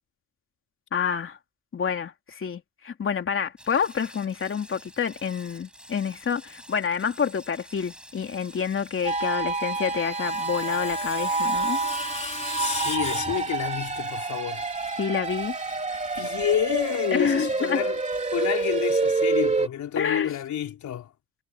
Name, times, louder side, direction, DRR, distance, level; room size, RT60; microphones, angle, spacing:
voice 1, 0.9-1.4 1.7-11.8 15.0-15.5 17.1-17.8 19.9-20.4, left 6 dB, 45° left, 3.1 m, -28 dB
sound 1, 3.6-19.3, equal, 5° right, 6.1 m, -49 dB
sound 2, 9.0-19.7, right 3 dB, 20° right, 3.0 m, -28 dB
Screech, 9.7-14.0, left 2 dB, 20° left, 2.7 m, -36 dB
voice 2, 12.6-14.6 15.9-18.0 18.3-21.1, left 10 dB, 70° left, 4.1 m, -29 dB
cardioid pair, 90°, 30 cm